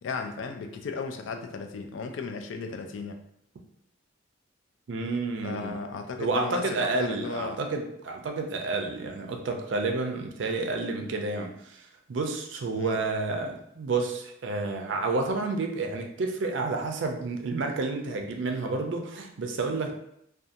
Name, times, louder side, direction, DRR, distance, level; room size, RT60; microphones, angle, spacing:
voice 1, 0.0-3.2 5.4-7.6 12.8-13.0, left 4 dB, 70° left, 5 dB, 0.3 m, -35 dB
voice 2, 4.9-5.7 6.2-19.9, right 3 dB, 65° right, 3 dB, 0.4 m, -30 dB
2.7 x 2.3 x 2.5 m, 0.74 s
head